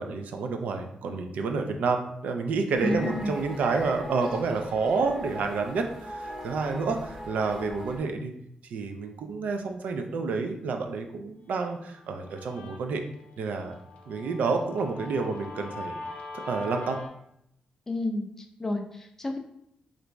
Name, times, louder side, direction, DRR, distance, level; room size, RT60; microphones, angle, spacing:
voice 1, 0.0-8.3 8.7-13.0 13.4-13.8 14.1-16.0 16.3-17.0, right 4 dB, 80° right, 5 dB, 0.4 m, -29 dB
sound 1, 2.7-8.0, equal, 25° right, 0.7 m, -40 dB
voice 2, 2.8-3.4 17.9-19.4, left 2 dB, 15° left, 4 dB, 0.3 m, -31 dB
Guitar, 11.6-17.1, left 2 dB, 65° left, 0.6 m, -42 dB
2.9 x 2.6 x 3.3 m, 0.75 s
wide cardioid pair, 160°, 3 cm